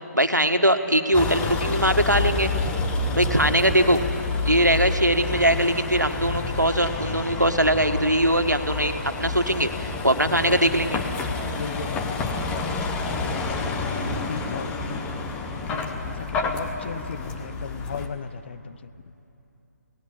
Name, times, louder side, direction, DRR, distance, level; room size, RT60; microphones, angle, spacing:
voice 1, 0.1-2.5 3.1-4.0 4.5-8.9 9.2-11.0, right 1 dB, 90° right, 7 dB, 1.8 m, -21 dB
Vehicle, 1.1-18.1, left 3 dB, 10° left, 1.2 m, -29 dB
voice 2, 3.0-3.5 10.2-10.9 11.5-15.1 15.6-18.9, left 6 dB, 40° left, 12 dB, 0.9 m, -37 dB
29.0 x 19.0 x 8.7 m, 2.9 s
figure-of-eight pair, 145°, 9 cm